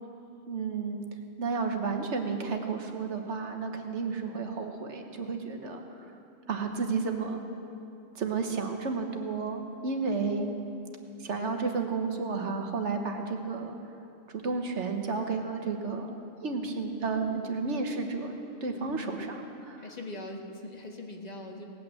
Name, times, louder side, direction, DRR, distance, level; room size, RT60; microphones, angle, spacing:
voice 1, 0.5-1.0 1.4-5.8 6.5-7.4 8.1-10.5 11.2-13.8 14.3-16.2 16.4-19.8, right 4 dB, 60° right, 4 dB, 1.5 m, -32 dB
voice 2, 18.8-19.2 19.8-21.6, left 2 dB, 30° left, 2 dB, 1.5 m, -41 dB
18.5 x 8.8 x 7.6 m, 2.7 s
omnidirectional pair, 1.4 m